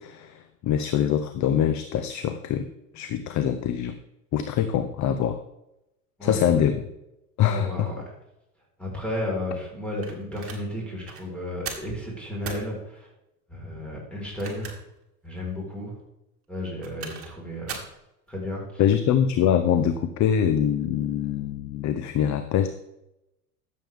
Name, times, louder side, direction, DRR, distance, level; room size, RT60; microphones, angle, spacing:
voice 1, 0.0-2.7 2.9-3.9 4.3-5.4 6.2-6.8 7.4-7.9 18.8-22.7, left 9 dB, 40° left, 10 dB, 0.8 m, -24 dB
voice 2, 7.5-8.0 8.8-13.1 13.5-14.7 15.2-16.0 16.5-17.8 18.3-18.8, left 1 dB, ahead, -3 dB, 4.4 m, -33 dB
sound 1, 10.0-10.6 11.0-11.2 11.7-11.9 12.4-12.7 14.2-15.0 15.4-15.5 16.6-17.3 17.7-18.0, right 6 dB, 30° right, 2.5 m, -38 dB
12.5 x 7.6 x 3.5 m, 0.88 s
hypercardioid pair, 95°, 46 cm